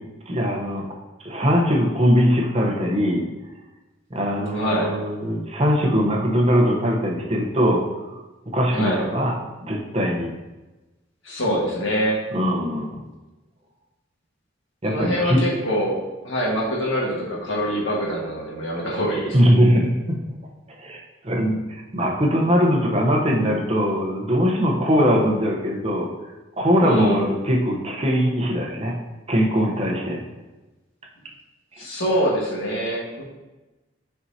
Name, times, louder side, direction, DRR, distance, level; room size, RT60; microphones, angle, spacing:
voice 1, 0.3-0.9 1.2-3.3 4.1-7.9 8.5-9.4 9.6-10.3 12.3-13.0 14.8-15.5 19.3-20.2 20.8-26.1 26.6-29.0 29.3-30.2 31.7-31.8, equal, 30° right, 0 dB, 0.9 m, -21 dB
voice 2, 4.5-4.9 8.7-9.0 11.2-12.2 14.9-19.4 26.8-27.2 31.8-33.2, equal, 90° left, -4 dB, 1.7 m, -24 dB
8.5 x 4.5 x 2.8 m, 1.1 s
head